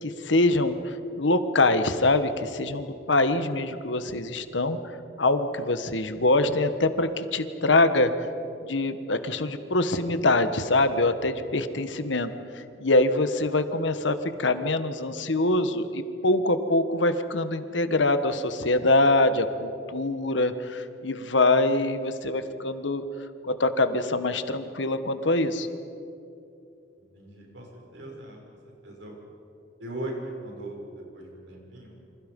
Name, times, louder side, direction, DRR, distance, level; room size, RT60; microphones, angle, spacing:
voice 1, 0.0-4.8 5.2-8.1 8.6-23.0 23.5-25.7, left 2 dB, 70° left, 10 dB, 1.5 m, -24 dB
voice 2, 27.0-29.1 29.8-30.1 30.4-32.0, right 1 dB, 70° right, -1 dB, 6.9 m, -40 dB
28.5 x 26.5 x 5.5 m, 2.7 s
head